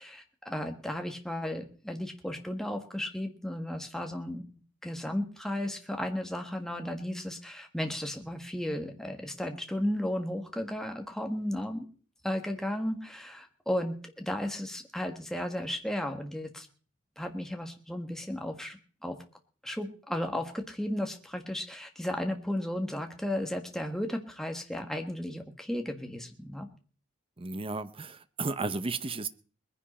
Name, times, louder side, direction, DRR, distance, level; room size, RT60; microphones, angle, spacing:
voice 1, 0.0-4.4 4.8-11.9 12.2-16.7 17.2-19.2 19.6-26.7, left 1 dB, ahead, 4 dB, 1.5 m, -34 dB
voice 2, 27.4-29.3, right 3 dB, 25° right, 13 dB, 0.7 m, -33 dB
21.0 x 10.0 x 4.3 m, 0.41 s
head